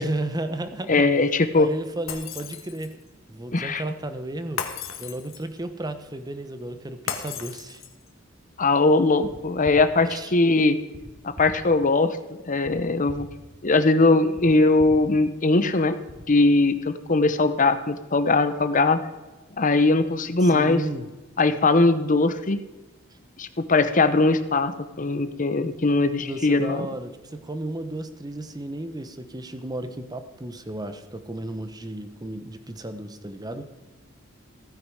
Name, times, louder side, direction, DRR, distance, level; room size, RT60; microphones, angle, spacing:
voice 1, 0.0-1.1 1.5-2.9 3.3-4.6 5.0-7.8 10.1-10.3 20.4-21.1 26.2-33.7, right 1 dB, 20° right, 9 dB, 1.0 m, -33 dB
voice 2, 0.9-1.7 3.5-3.8 8.6-10.8 11.2-13.3 13.6-16.0 16.3-19.0 19.6-20.8 21.4-22.6 23.4-26.9, left 3 dB, 40° left, 11 dB, 0.9 m, -20 dB
Shatter, 2.1-3.0 4.6-5.6 7.1-8.1, left 7 dB, 70° left, 1.4 m, -34 dB
sound 1, 9.2-9.3 9.6-9.8 10.9-11.0 11.3-11.5 12.6-12.7 13.1-13.2 14.4-14.5 14.8-14.9 16.1-16.2, left 1 dB, 35° right, 3.8 m, -41 dB
15.5 x 9.7 x 4.9 m, 1.1 s
head